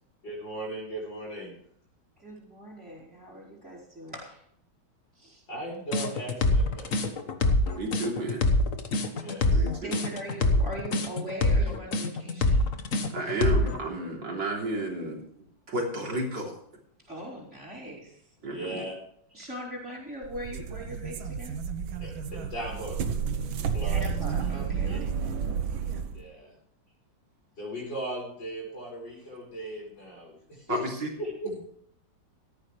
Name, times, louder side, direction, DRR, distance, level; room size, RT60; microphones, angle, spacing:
voice 1, 0.2-1.6 5.5-7.2 9.1-9.5 18.4-19.0 22.0-23.0 23.7-24.1 24.8-25.3 26.1-26.5 27.6-30.8 31.2-31.6, equal, 65° left, -4 dB, 5.7 m, -38 dB
voice 2, 2.2-4.4 5.2-5.4 9.2-12.6 13.2-13.4 17.1-18.2 19.3-21.6 23.8-25.1, right 1 dB, 5° right, -9 dB, 4.5 m, -41 dB
sound 1, 5.9-13.8, left 2 dB, 45° left, 1.6 m, -24 dB
voice 3, 7.8-8.4 9.5-10.0 13.1-15.2 15.7-16.6 18.4-18.8 30.7-31.1 31.5-31.6, right 2 dB, 70° right, -1 dB, 4.1 m, -32 dB
sound 2, 20.2-26.2, right 6 dB, 85° right, 1.8 m, -31 dB
17.5 x 14.0 x 3.3 m, 0.68 s
omnidirectional pair, 2.1 m